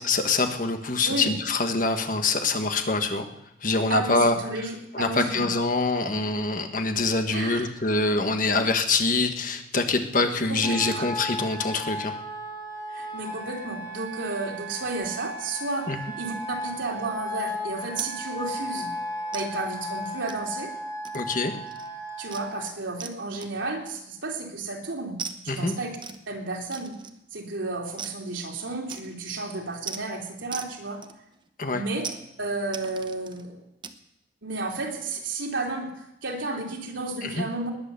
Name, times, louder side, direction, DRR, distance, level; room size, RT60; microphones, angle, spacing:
voice 1, 0.0-3.3 3.6-4.3 4.9-12.2 15.9-16.0 21.1-21.5 25.5-25.7 31.6-31.8 37.2-37.4, left 3 dB, 45° left, 6 dB, 1.5 m, -25 dB
voice 2, 3.9-5.4 7.3-7.7 10.5-11.1 12.9-15.9 16.2-16.3 16.6-18.9 19.3-20.7 22.2-25.2 25.4-26.0 26.3-26.9 27.3-31.0 31.7-32.1 32.4-33.6 34.4-37.7, right 3 dB, 85° right, 1 dB, 3.2 m, -32 dB
Wind instrument woodwind instrument, 10.6-22.6, equal, 25° left, 3.2 m, -35 dB
sound 1, 18.0-18.2 18.5-18.7 19.3-19.5 20.3-20.6 21.0-21.4 21.7-21.9 22.3-22.5 23.0-23.2 23.4-23.8 25.2-25.4 26.0-26.2 26.7-27.3 28.0-28.2 28.9-29.3 29.9-30.0 30.5-30.8 31.0-31.5 32.0-32.2 32.7-33.4 33.8-34.0, right 6 dB, 25° right, 0.9 m, -38 dB
19.5 x 9.6 x 6.9 m, 0.85 s
head